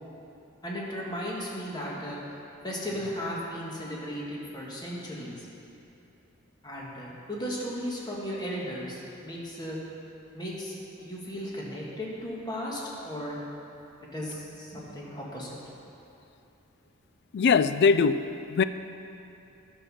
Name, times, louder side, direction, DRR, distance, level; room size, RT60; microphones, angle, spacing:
voice 1, 0.6-2.2 2.6-5.5 6.6-9.8 10.3-13.4 14.0-15.7, equal, 20° left, -4 dB, 1.7 m, -36 dB
voice 2, 17.3-18.6, left 5 dB, 50° left, 12 dB, 0.3 m, -22 dB
10.5 x 5.9 x 6.3 m, 2.8 s
head